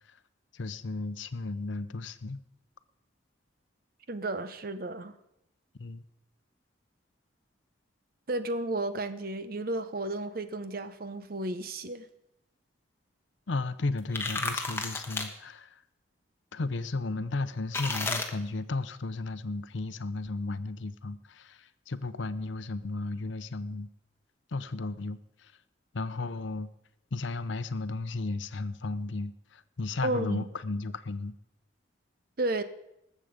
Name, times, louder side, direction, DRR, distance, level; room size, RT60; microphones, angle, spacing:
voice 1, 0.5-2.4 5.8-6.0 13.5-15.8 16.5-23.9 24.5-25.5 25.9-26.7 27.1-31.4, left 3 dB, 75° left, 13 dB, 0.7 m, -34 dB
voice 2, 4.1-5.1 8.3-12.1 30.0-30.4 32.4-32.6, right 2 dB, 50° right, 11 dB, 0.8 m, -33 dB
sound 1, 14.0-15.3 17.7-18.3, left 3 dB, 10° left, 1.1 m, -32 dB
19.5 x 7.5 x 5.1 m, 0.82 s
head